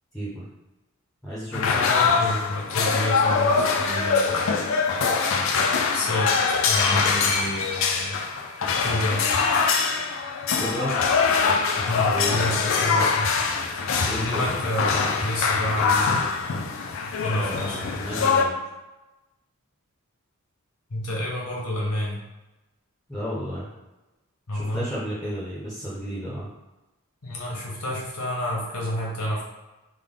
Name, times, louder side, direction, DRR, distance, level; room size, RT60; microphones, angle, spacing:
voice 1, 0.1-0.5 1.2-1.9 10.5-10.9 12.1-12.4 14.1-14.7 17.3-18.6 23.1-23.7 24.5-26.5, equal, ahead, -9 dB, 0.6 m, -32 dB
sound 1, 1.5-18.4, left 5 dB, 60° left, 0.4 m, -23 dB
voice 2, 1.6-4.8 5.9-6.3 6.7-8.2 8.8-9.2 11.8-13.3 14.2-16.2 17.2-17.8 20.9-22.2 24.5-24.9 27.2-29.5, left 1 dB, 85° left, -3 dB, 1.1 m, -29 dB
3.5 x 2.2 x 3.6 m, 1.0 s
head